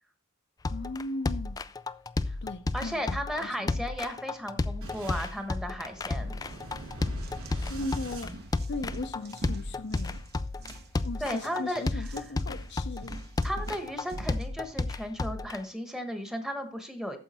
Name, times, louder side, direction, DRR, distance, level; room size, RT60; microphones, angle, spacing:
sound 1, 0.6-15.6, left 3 dB, 15° left, 0.3 m, -32 dB
voice 1, 0.7-1.6 2.4-3.0 3.4-3.8 7.7-8.3 8.7-10.2 11.0-13.2, left 2 dB, 50° left, 0.6 m, -37 dB
voice 2, 2.7-6.4 11.2-12.1 13.4-17.2, equal, 5° right, 1.1 m, -35 dB
Boom, 4.8-9.2, right 1 dB, 65° right, 3.2 m, -43 dB
sound 2, 6.3-6.6 7.0-14.5, right 1 dB, 50° right, 1.1 m, -45 dB
9.2 x 7.0 x 4.2 m
head